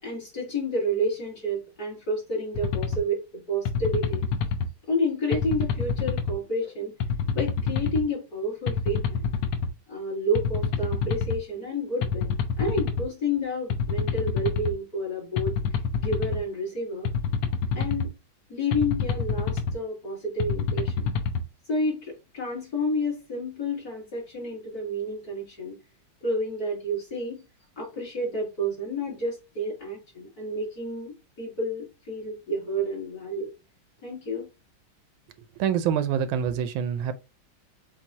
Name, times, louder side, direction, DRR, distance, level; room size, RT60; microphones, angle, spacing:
voice 1, 0.0-4.3 4.9-6.9 7.3-9.3 9.9-15.6 16.0-17.1 17.7-18.1 18.5-21.1 21.7-25.8 26.2-27.4 27.8-33.5 34.0-34.5, equal, 50° left, 3.0 m, -30 dB
sound 1, 2.6-3.0 3.7-4.7 5.3-6.4 7.0-8.0 8.7-9.7 10.4-11.4 12.0-13.1 13.7-14.7 15.4-16.4 17.0-18.1 18.7-19.8 20.4-21.4, left 6 dB, 75° left, 1.4 m, -27 dB
voice 2, 35.6-37.1, right 8 dB, 90° right, 1.5 m, -25 dB
7.2 x 2.6 x 2.7 m
omnidirectional pair, 2.2 m